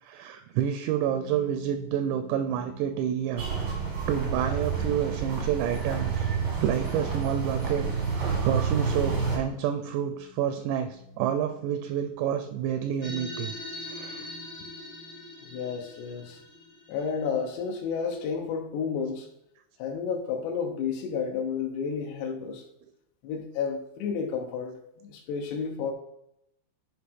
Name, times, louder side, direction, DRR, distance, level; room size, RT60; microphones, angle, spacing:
voice 1, 0.0-3.5 4.1-7.8 8.1-13.5 13.9-14.3, right 9 dB, 85° right, 8 dB, 2.6 m, -29 dB
sound 1, 1.0-13.4, left 1 dB, 55° left, 0.4 m, -49 dB
sound 2, 3.4-9.4, right 5 dB, 60° right, 1.2 m, -29 dB
sound 3, 13.0-17.9, left 1 dB, 35° left, 1.8 m, -41 dB
voice 2, 15.4-16.4 16.9-19.3 19.8-22.7 23.2-25.9, left 6 dB, 75° left, 1 dB, 2.7 m, -31 dB
10.0 x 4.9 x 3.6 m, 0.79 s
omnidirectional pair, 5.3 m